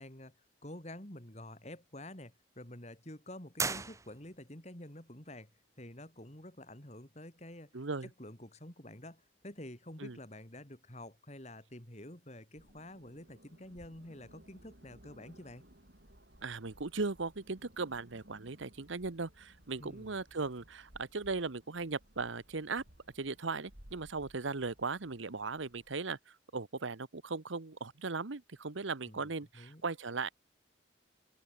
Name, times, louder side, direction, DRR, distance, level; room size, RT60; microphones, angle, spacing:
voice 1, 0.0-5.5 5.8-15.6 19.8-20.2 29.1-29.8, left 1 dB, 35° left, 3.7 m, -49 dB
sound 1, 3.6-4.6, right 4 dB, 15° right, 1.0 m, -37 dB
voice 2, 7.7-8.1 10.0-10.2 16.4-22.8 23.1-30.3, right 4 dB, 75° right, 1.0 m, -38 dB
sound 2, 12.6-26.0, equal, 55° right, 5.4 m, -60 dB
open air
head